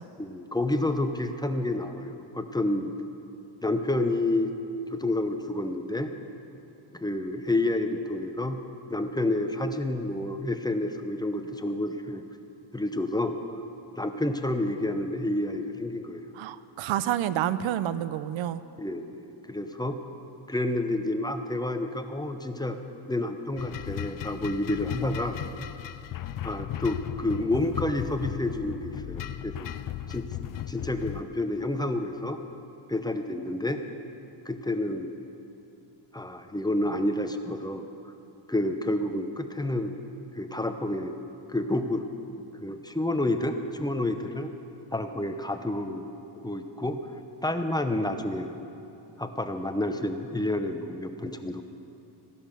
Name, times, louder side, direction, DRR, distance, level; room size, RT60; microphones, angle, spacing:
voice 1, 0.2-2.9 3.6-4.5 4.9-6.1 6.9-8.6 8.9-12.2 12.7-13.4 14.0-16.3 18.8-19.2 19.5-20.0 20.5-22.8 23.1-25.4 26.4-29.7 30.1-30.3 30.7-32.4 32.9-33.8 34.5-35.1 36.1-37.9 38.5-40.0 40.3-41.1 41.5-42.0 42.6-44.5 44.9-46.1 46.4-47.0 47.4-48.5 49.2-51.6, left 1 dB, 10° left, 7 dB, 0.7 m, -29 dB
voice 2, 16.3-18.6, right 11 dB, 80° right, 15 dB, 0.7 m, -29 dB
sound 1, 23.6-31.2, left 11 dB, 45° left, 0.5 m, -36 dB
15.5 x 11.0 x 6.7 m, 2.8 s
cardioid pair, 125°, 46 cm